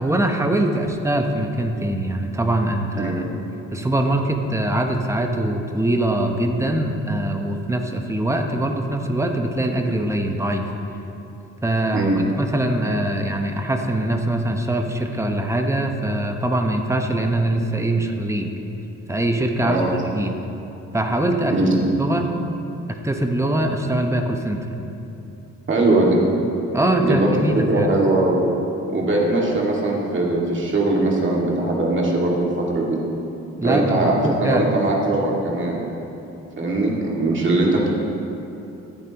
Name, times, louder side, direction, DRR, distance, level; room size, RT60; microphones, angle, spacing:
voice 1, 0.0-3.2 3.7-10.7 11.6-12.1 12.4-18.5 19.1-19.8 20.1-20.4 20.9-21.5 22.0-22.3 22.9-24.7 26.7-27.9 33.6-34.7, right 1 dB, 10° right, 3 dB, 0.9 m, -22 dB
voice 2, 19.6-20.0 21.4-21.8 25.7-26.2 27.0-27.3 27.7-28.5 28.9-33.0 33.6-35.8 36.6-37.9, right 2 dB, 40° right, -3 dB, 2.2 m, -20 dB
14.5 x 8.6 x 3.0 m, 2.9 s
cardioid pair, 90°, 30 cm